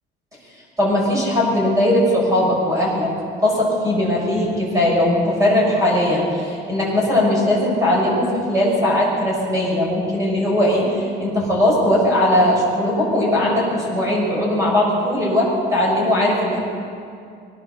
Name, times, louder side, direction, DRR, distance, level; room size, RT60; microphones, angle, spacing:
voice 1, 0.8-3.1 3.4-16.6, left 1 dB, 15° right, -3 dB, 7.2 m, -19 dB
24.0 x 19.0 x 7.1 m, 2.4 s
cardioid pair, 180°, 20 cm